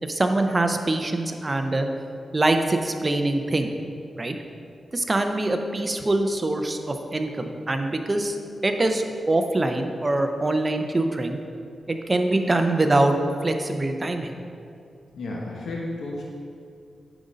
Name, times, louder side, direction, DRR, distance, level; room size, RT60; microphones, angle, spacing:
voice 1, 0.0-1.9 2.3-3.7 4.2-4.4 4.9-8.4 8.6-11.4 11.9-13.2 13.4-14.4, right 2 dB, 25° right, 5 dB, 0.5 m, -24 dB
voice 2, 15.1-16.2, left 2 dB, 85° left, -3 dB, 1.0 m, -32 dB
9.2 x 4.0 x 5.1 m, 2.4 s
wide cardioid pair, 135°, 0 cm